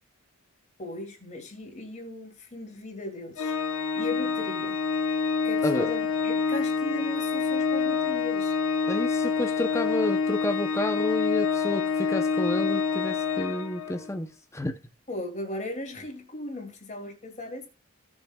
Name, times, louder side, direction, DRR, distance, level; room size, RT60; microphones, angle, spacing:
voice 1, 0.8-4.8 5.4-8.5 15.1-17.7, left 2 dB, 35° left, 2.4 m, -37 dB
Organ, 3.4-14.1, left 5 dB, 80° left, 1.1 m, -27 dB
voice 2, 8.9-14.8, left 1 dB, 15° left, 0.6 m, -30 dB
17.5 x 6.3 x 2.3 m
head